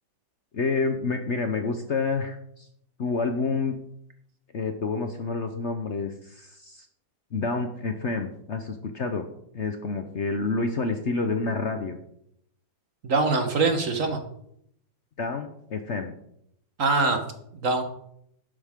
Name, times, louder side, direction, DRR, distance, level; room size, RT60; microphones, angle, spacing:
voice 1, 0.5-2.7 3.0-3.8 4.5-6.9 7.3-9.3 9.5-12.0 15.2-16.1, left 4 dB, 50° left, 6 dB, 1.0 m, -28 dB
voice 2, 13.0-14.2 16.8-17.2 17.5-17.8, right 3 dB, 50° right, 6 dB, 1.6 m, -23 dB
11.5 x 10.0 x 3.7 m, 0.72 s
omnidirectional pair, 1.9 m